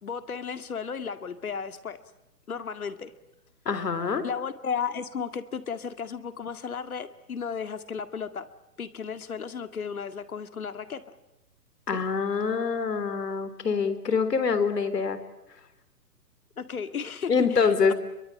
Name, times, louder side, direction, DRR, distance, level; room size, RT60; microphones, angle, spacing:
voice 1, 0.0-2.0 2.5-3.1 4.2-8.5 8.8-11.0 11.9-12.0 16.6-17.9, left 6 dB, 60° left, 10 dB, 2.2 m, -34 dB
voice 2, 3.7-4.3 11.9-15.2 17.3-17.9, left 5 dB, 75° left, 11 dB, 3.9 m, -25 dB
26.5 x 23.5 x 8.9 m, 0.92 s
hypercardioid pair, 180°, 48 cm